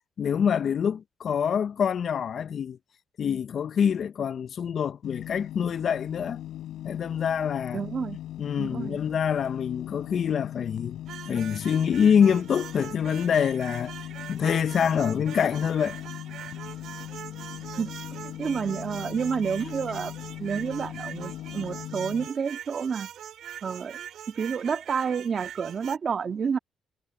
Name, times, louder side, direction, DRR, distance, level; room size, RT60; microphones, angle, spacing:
voice 1, 0.2-2.8 3.2-6.4 6.8-7.8 8.4-11.0 11.3-13.9 14.3-16.0, left 7 dB, 55° left, 0.5 m, -25 dB
sound 1, 5.0-22.3, left 13 dB, 85° left, 3.2 m, -39 dB
voice 2, 7.7-8.2 8.6-9.0 17.8-17.9 18.2-20.1 20.4-23.1 23.6-24.0 24.4-26.6, right 6 dB, 45° right, 2.2 m, -29 dB
sound 2, 11.1-26.0, right 10 dB, 75° right, 1.8 m, -42 dB
cardioid pair, 90°, 0 cm